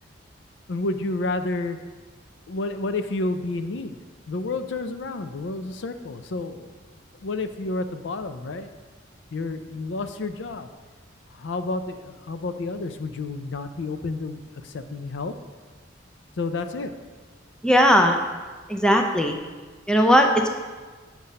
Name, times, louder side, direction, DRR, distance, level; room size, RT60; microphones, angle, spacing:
voice 1, 0.7-1.8 2.5-4.0 4.3-6.7 7.2-8.7 9.3-10.7 11.4-14.4 14.7-15.3 16.4-16.9, left 2 dB, 65° left, 9 dB, 0.5 m, -30 dB
voice 2, 17.6-18.2 18.7-19.4 19.9-20.6, equal, 5° left, 3 dB, 0.5 m, -18 dB
7.3 x 5.7 x 5.4 m, 1.4 s
head